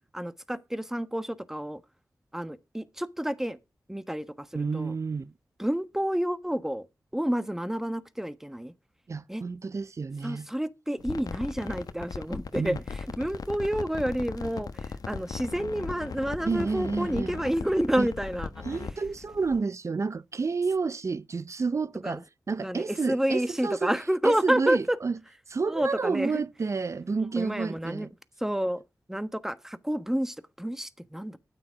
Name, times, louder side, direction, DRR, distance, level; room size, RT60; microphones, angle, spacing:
voice 1, 0.1-1.8 2.3-3.6 3.9-4.9 5.6-6.9 7.1-8.7 9.3-9.4 10.2-18.6 22.0-22.2 22.6-25.0 25.7-26.4 27.4-28.1 28.4-28.8 29.1-31.4, equal, 5° right, 1.2 m, -29 dB
voice 2, 4.5-5.3 9.1-10.5 12.6-12.8 16.4-17.3 18.0-18.1 18.6-22.2 22.5-23.9 24.2-25.2 25.5-28.1, right 4 dB, 50° right, 0.6 m, -30 dB
sound 1, 11.0-19.6, left 5 dB, 75° left, 1.1 m, -38 dB
12.5 x 9.0 x 4.6 m
cardioid pair, 60°, 6 cm